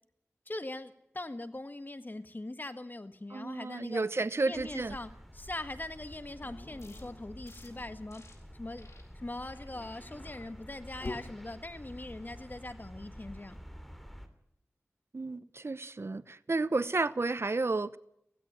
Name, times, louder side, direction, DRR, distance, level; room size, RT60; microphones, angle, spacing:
voice 1, 0.5-4.1 4.4-8.3 8.5-8.9 9.1-13.6, left 2 dB, 40° left, 1.6 m, -41 dB
voice 2, 3.3-5.0 15.1-18.0, right 3 dB, 60° right, 0.8 m, -32 dB
sound 1, 4.5-14.3, equal, 5° left, 2.9 m, -49 dB
Dog, 6.4-8.0 9.6-11.4, left 2 dB, 55° left, 1.8 m, -45 dB
sound 2, 6.8-7.0 7.4-7.7 8.1-8.3 8.8-9.0 9.4-9.7 10.1-10.5 11.0-11.3, left 3 dB, 80° left, 4.3 m, -57 dB
16.5 x 16.0 x 9.9 m
wide cardioid pair, 45°, 5 cm